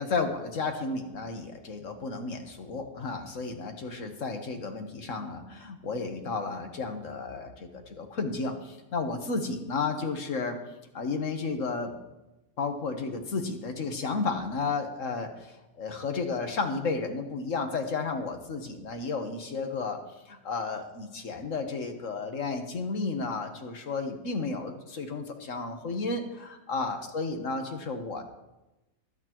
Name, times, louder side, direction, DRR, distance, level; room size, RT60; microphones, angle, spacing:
voice 1, 0.0-10.6 10.9-11.9 12.6-20.0 20.3-28.2, left 4 dB, 55° left, 5 dB, 1.5 m, -32 dB
22.5 x 8.7 x 3.0 m, 1.0 s
omnidirectional pair, 1.7 m